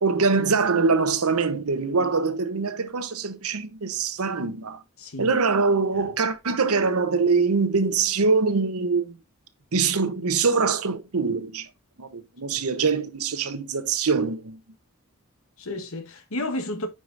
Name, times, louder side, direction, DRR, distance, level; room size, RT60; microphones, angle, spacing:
voice 1, 0.0-4.8 5.2-9.2 9.7-11.7 12.0-14.6, right 4 dB, 75° right, 0.9 m, -23 dB
voice 2, 5.0-5.3 5.9-6.1 12.5-12.7 15.6-16.9, left 1 dB, 65° left, 1.2 m, -32 dB
9.3 x 4.9 x 2.5 m
head